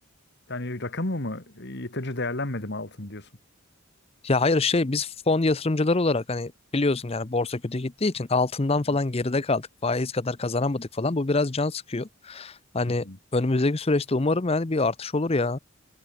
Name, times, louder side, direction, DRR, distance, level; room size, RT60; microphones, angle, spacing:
voice 1, 0.5-3.3 12.9-13.2, left 2 dB, 50° left, 2.1 m, -32 dB
voice 2, 4.2-13.1 13.3-15.6, left 3 dB, 25° left, 0.6 m, -25 dB
head